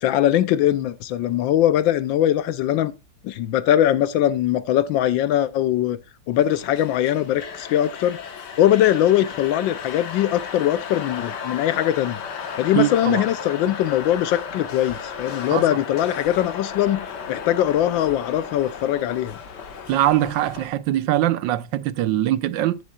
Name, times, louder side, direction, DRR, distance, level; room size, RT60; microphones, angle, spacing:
voice 1, 0.0-2.9 3.2-6.0 6.3-8.2 8.6-12.2 12.6-17.0 17.3-19.4, left 12 dB, 85° left, 1.4 m, -21 dB
sound 1, 6.4-20.7, left 6 dB, 65° left, 1.8 m, -34 dB
voice 2, 12.7-13.2 15.4-15.6 19.9-22.8, right 13 dB, 80° right, 1.3 m, -22 dB
15.0 x 7.0 x 2.3 m
omnidirectional pair, 2.0 m